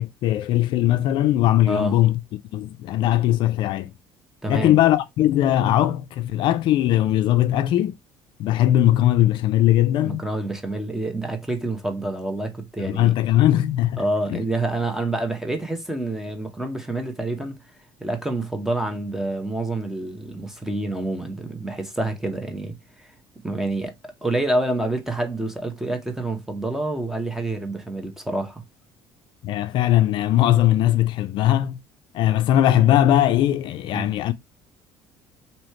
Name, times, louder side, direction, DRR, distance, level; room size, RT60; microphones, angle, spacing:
voice 1, 0.0-2.2 2.5-3.9 4.5-7.9 8.4-10.2 12.8-14.0 14.3-14.4 29.4-31.8 32.1-34.3, left 13 dB, 60° left, 0.4 m, -19 dB
voice 2, 1.7-2.0 4.4-4.8 10.0-13.1 14.0-17.6 18.0-23.1 23.4-23.9 24.2-28.6 33.9-34.1, right 2 dB, 5° right, 0.9 m, -27 dB
3.1 x 2.8 x 4.2 m
cardioid pair, 120°, 9 cm